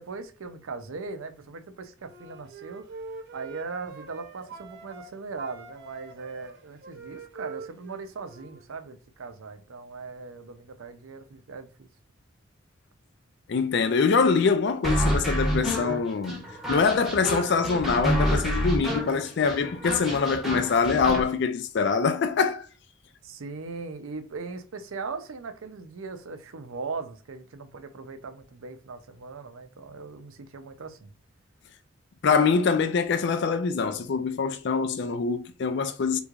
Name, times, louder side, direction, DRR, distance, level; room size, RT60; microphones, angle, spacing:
voice 1, 0.0-2.8 3.3-11.9 23.2-31.1, right 4 dB, 85° right, 0.6 m, -39 dB
Wind instrument woodwind instrument, 2.0-5.1 5.4-8.7, right 4 dB, 55° right, 0.8 m, -44 dB
voice 2, 13.5-22.7 32.2-36.2, left 5 dB, 55° left, 0.4 m, -24 dB
sound 1, 14.8-21.2, equal, ahead, 0.8 m, -28 dB
3.4 x 3.1 x 2.4 m
head